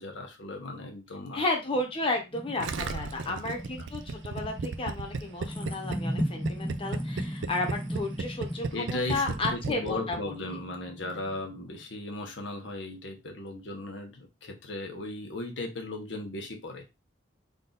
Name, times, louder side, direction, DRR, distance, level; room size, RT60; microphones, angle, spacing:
voice 1, 0.0-1.5 2.8-3.4 8.7-16.8, left 2 dB, 70° left, 2 dB, 1.1 m, -37 dB
voice 2, 1.3-10.3, left 2 dB, 30° left, 2 dB, 1.0 m, -33 dB
sound 1, 1.7-11.8, equal, 10° left, 0.6 m, -37 dB
Gurgling, 2.6-10.2 10.4-10.5, right 4 dB, 75° right, 0.4 m, -34 dB
3.7 x 2.6 x 3.9 m, 0.24 s
head